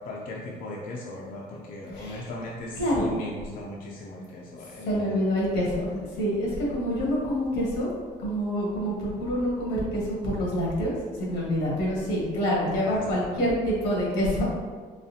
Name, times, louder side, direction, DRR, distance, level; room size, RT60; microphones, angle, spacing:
voice 1, 0.0-5.2 12.9-13.4, left 1 dB, 55° left, -3 dB, 0.6 m, -38 dB
voice 2, 1.9-2.3 2.8-3.1 4.8-7.9 8.2-14.5, equal, 90° left, -5 dB, 1.5 m, -27 dB
4.0 x 3.1 x 2.8 m, 1.5 s
cardioid pair, 110°, 17 cm